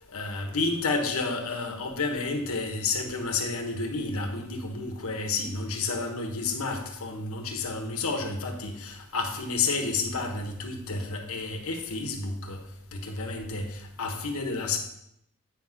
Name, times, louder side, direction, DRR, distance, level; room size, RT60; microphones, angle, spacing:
voice 1, 0.1-12.6 12.9-14.8, left 3 dB, 75° left, 4 dB, 1.2 m, -30 dB
8.5 x 6.0 x 3.9 m, 0.77 s
head